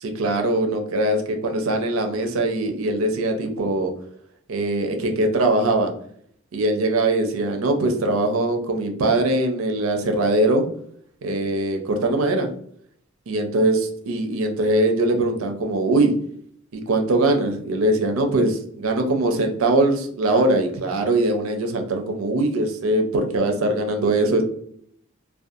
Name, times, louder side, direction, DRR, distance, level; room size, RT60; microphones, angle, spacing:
voice 1, 0.0-3.9 4.5-5.9 6.5-10.7 11.2-12.5 13.3-16.1 16.7-24.4, right 2 dB, 70° right, 4 dB, 0.5 m, -21 dB
2.4 x 2.2 x 2.6 m, 0.65 s
head